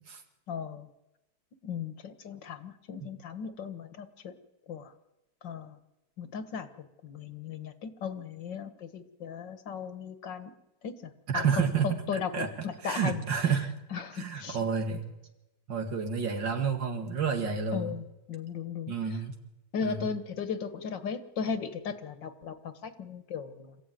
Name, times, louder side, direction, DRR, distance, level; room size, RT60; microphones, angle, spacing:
voice 1, 0.5-0.9 1.6-4.3 4.7-4.9 5.4-5.8 6.2-10.5 10.8-13.2 13.9-14.6 17.7-19.2 19.7-23.8, left 6 dB, 75° left, 10 dB, 2.2 m, -37 dB
voice 2, 11.3-12.5 12.8-13.7 14.2-15.1 15.7-18.0 18.9-19.4 19.8-20.0, right 6 dB, 75° right, 5 dB, 2.7 m, -30 dB
27.0 x 15.0 x 9.3 m, 0.99 s
omnidirectional pair, 2.0 m